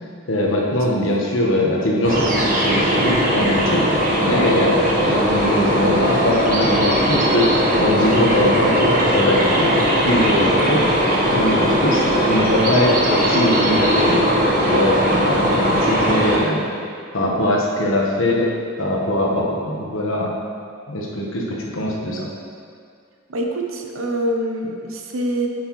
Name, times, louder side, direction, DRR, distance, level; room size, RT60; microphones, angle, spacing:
voice 1, 0.3-3.9 4.2-7.5 7.8-10.9 11.3-14.2 14.7-16.7 17.1-18.5 18.8-20.3 20.9-22.3, left 1 dB, 65° left, -2 dB, 1.2 m, -21 dB
voice 2, 0.9-1.2 23.3-25.5, right 1 dB, 75° right, 2 dB, 0.8 m, -25 dB
sound 1, 2.0-16.4, equal, 40° right, 1.2 m, -19 dB
7.8 x 7.7 x 3.1 m, 2.3 s
head